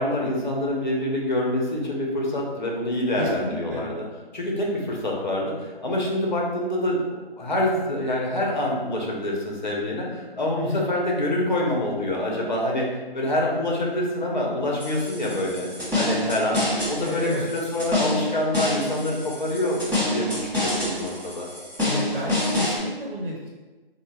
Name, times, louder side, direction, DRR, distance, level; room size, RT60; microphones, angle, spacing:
voice 1, 0.0-4.1 4.3-12.9 13.1-15.7 15.9-16.6 16.9-19.8 20.1-21.5, left 1 dB, 50° left, -2 dB, 0.8 m, -26 dB
voice 2, 3.2-3.9 10.6-10.9 17.0-17.4 21.8-23.5, equal, 60° right, -3 dB, 1.0 m, -31 dB
sound 1, 14.8-22.8, left 1 dB, 5° right, 1.0 m, -27 dB
3.4 x 2.2 x 3.2 m, 1.2 s
figure-of-eight pair, 165°, 30 cm